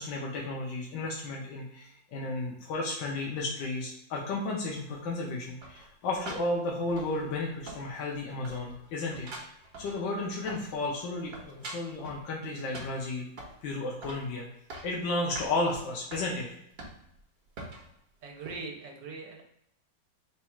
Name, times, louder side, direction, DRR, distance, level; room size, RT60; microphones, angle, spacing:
voice 1, 0.0-9.5 9.8-13.3 13.6-14.5 14.8-16.6, left 2 dB, 85° left, -2 dB, 1.5 m, -33 dB
sound 1, 5.6-7.4 7.7-8.2 8.4-10.8 11.1-12.2 12.7-13.6 14.0-14.3 14.5-15.0 15.4-15.5 16.1-16.3 16.8-17.2 17.6-17.9 18.4-18.6, right 2 dB, 60° right, 1.4 m, -44 dB
voice 2, 18.2-19.4, right 3 dB, 75° right, 1 dB, 1.5 m, -41 dB
4.1 x 2.4 x 4.3 m, 0.76 s
omnidirectional pair, 2.0 m